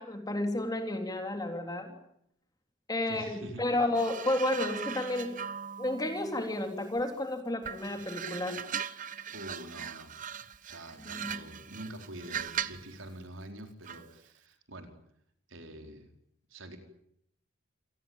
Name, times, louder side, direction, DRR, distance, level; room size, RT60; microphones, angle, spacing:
voice 1, 0.0-2.0 2.9-5.3 5.8-8.7 11.2-11.3, left 1 dB, 20° left, 5 dB, 3.5 m, -31 dB
voice 2, 3.1-3.6 9.3-10.2 10.6-14.9 15.5-16.1 16.5-16.8, right 1 dB, 75° right, 5 dB, 4.7 m, -46 dB
sound 1, 3.9-7.2 7.6-12.9 13.9-14.1, right 8 dB, 40° right, 0.9 m, -40 dB
28.0 x 19.5 x 9.1 m, 0.74 s
head